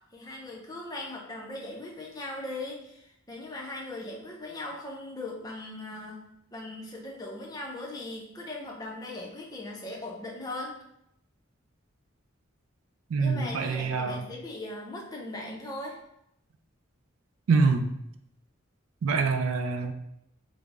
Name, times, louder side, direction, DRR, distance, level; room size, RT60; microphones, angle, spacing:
voice 1, 0.1-10.8 13.2-16.0, left 2 dB, 20° left, -1 dB, 0.5 m, -39 dB
voice 2, 13.1-14.2 17.5-17.9 19.0-19.9, right 4 dB, 80° right, 7 dB, 0.3 m, -25 dB
3.7 x 2.0 x 3.4 m, 0.79 s
head